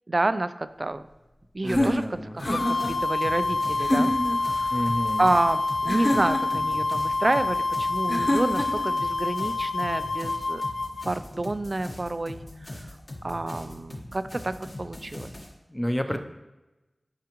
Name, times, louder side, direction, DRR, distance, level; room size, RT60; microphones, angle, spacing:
voice 1, 0.1-1.0 1.5-4.1 4.5-4.8 5.2-10.6 11.1-12.4 12.7-12.8 13.2-14.5 14.8-15.3, right 2 dB, 45° right, 12 dB, 0.4 m, -28 dB
sound 1, 1.6-2.9 3.8-4.4 5.9-6.6 8.1-8.9, left 1 dB, 35° left, 1.1 m, -26 dB
voice 2, 1.6-2.4 4.7-5.3 15.7-16.2, equal, 10° left, 6 dB, 0.6 m, -29 dB
sound 2, 2.4-11.1, left 3 dB, 80° left, 0.4 m, -27 dB
sound 3, 2.4-15.5, left 1 dB, 60° left, 1.4 m, -41 dB
10.5 x 4.8 x 3.0 m, 1.0 s
wide cardioid pair, 70°, 0 cm